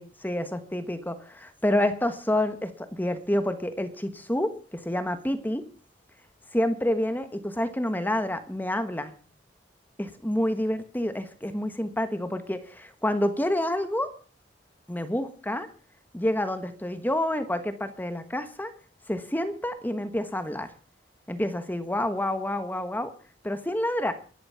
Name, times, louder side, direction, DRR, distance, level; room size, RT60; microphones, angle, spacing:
voice 1, 0.0-5.6 6.5-9.1 10.0-14.1 14.9-15.7 16.1-18.7 19.1-20.7 21.3-23.1 23.4-24.1, left 1 dB, 10° left, 9 dB, 1.3 m, -28 dB
23.0 x 11.0 x 5.7 m, 0.41 s
head